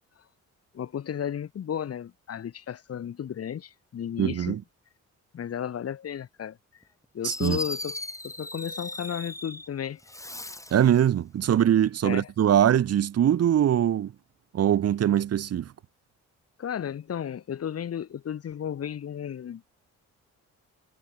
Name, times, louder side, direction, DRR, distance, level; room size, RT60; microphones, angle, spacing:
voice 1, 0.7-4.6 5.3-6.6 7.1-8.0 8.2-10.0 12.0-12.3 16.6-19.6, left 9 dB, 55° left, 1.7 m, -33 dB
voice 2, 4.2-4.6 7.2-7.6 10.7-14.1 14.5-15.7, right 10 dB, 55° right, 1.0 m, -22 dB
Fireworks, 6.8-6.9 7.2-9.7 10.0-10.9, left 2 dB, 10° left, 3.8 m, -37 dB
cardioid pair, 105°, 30 cm